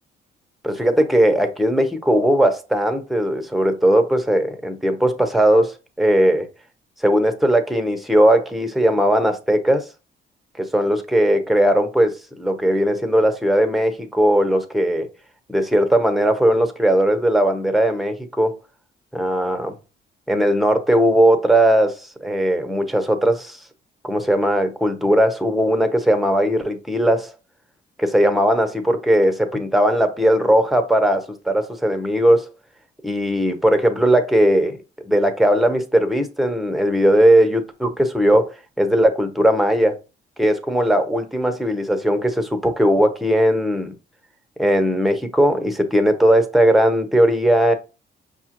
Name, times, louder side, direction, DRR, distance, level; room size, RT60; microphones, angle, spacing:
voice 1, 0.6-6.5 7.0-9.8 10.6-15.1 15.5-18.6 19.1-19.7 20.3-23.6 24.0-27.3 28.0-32.5 33.0-34.8 35.1-40.0 40.4-43.9 44.6-47.7, right 1 dB, ahead, 0.7 m, -18 dB
5.4 x 2.4 x 2.9 m
cardioid pair, 90°, 20 cm